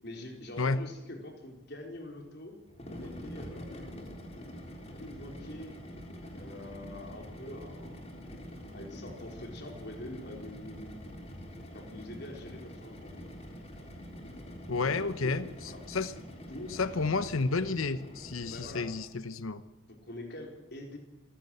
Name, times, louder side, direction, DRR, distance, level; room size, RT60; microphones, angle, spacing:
voice 1, 0.0-2.6 2.9-4.1 5.0-5.8 6.3-8.0 8.7-11.2 11.7-13.2 14.8-15.4 15.6-15.8 16.5-16.8 18.5-18.9 19.9-21.0, left 1 dB, 50° left, 2 dB, 4.5 m, -45 dB
sound 1, 2.7-19.1, equal, 30° left, 3.7 m, -45 dB
voice 2, 14.7-16.1 16.7-19.6, left 3 dB, 75° left, 13 dB, 0.9 m, -31 dB
26.5 x 15.5 x 8.0 m, 1.2 s
head